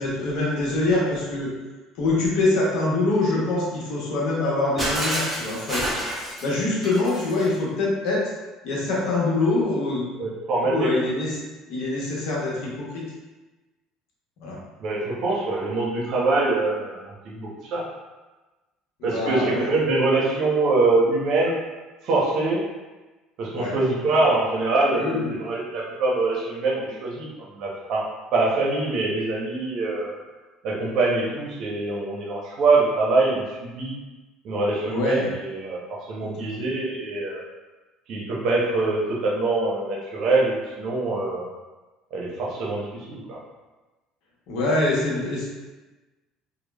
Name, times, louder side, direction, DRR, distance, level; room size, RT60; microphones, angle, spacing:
voice 1, 0.0-1.5 2.0-5.8 6.4-8.2 8.6-10.1 10.7-11.4 11.7-13.0 14.4-14.6 19.0-19.7 23.5-23.7 24.9-25.3 34.9-35.3 36.2-36.6 44.5-45.4, left 2 dB, 65° left, -5 dB, 0.9 m, -24 dB
Shatter, 4.8-7.5, equal, 10° right, 0.7 m, -29 dB
voice 2, 10.2-10.9 14.8-17.8 19.0-21.5 22.0-22.6 23.4-27.3 27.6-30.2 30.6-33.9 34.4-37.4 38.1-41.5 42.1-43.4, right 3 dB, 55° right, -3 dB, 0.7 m, -24 dB
3.0 x 2.1 x 2.3 m, 1.2 s
cardioid pair, 115°, 0 cm